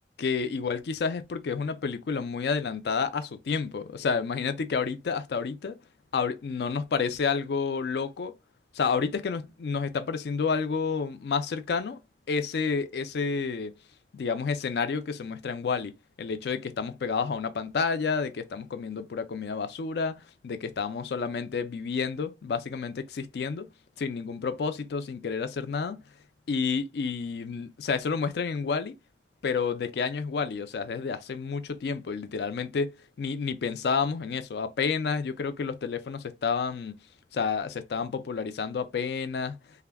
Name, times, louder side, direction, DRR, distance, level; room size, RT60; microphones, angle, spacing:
voice 1, 0.2-5.8 6.1-8.3 8.7-12.0 12.3-13.7 14.1-15.9 16.2-20.2 20.4-23.7 24.0-26.0 26.5-28.9 29.4-37.0 37.3-39.6, left 5 dB, 70° left, 0.4 m, -30 dB
2.2 x 2.0 x 3.3 m
head